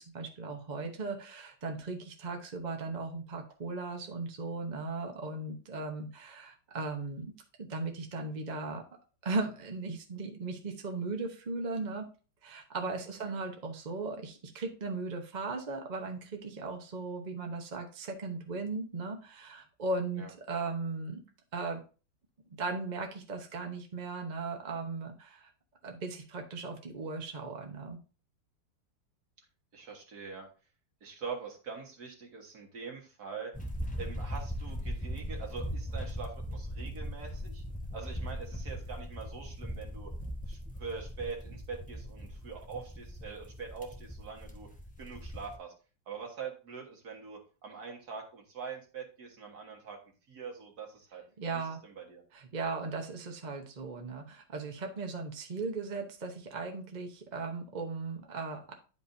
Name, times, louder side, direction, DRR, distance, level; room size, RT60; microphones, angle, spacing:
voice 1, 0.1-7.3 7.6-8.8 9.2-12.1 12.4-21.2 21.5-21.8 22.6-25.5 25.8-28.0 51.4-51.8 52.3-58.7, right 3 dB, 35° right, 2 dB, 0.8 m, -37 dB
voice 2, 29.7-30.5 31.0-33.5 34.0-37.6 37.9-40.1 40.5-44.7 45.0-45.7 46.1-51.2 51.5-52.2, right 5 dB, 60° right, 1 dB, 2.0 m, -43 dB
sound 1, 33.5-45.6, equal, 10° left, 0.5 m, -39 dB
10.0 x 5.2 x 2.7 m, 0.35 s
omnidirectional pair, 2.0 m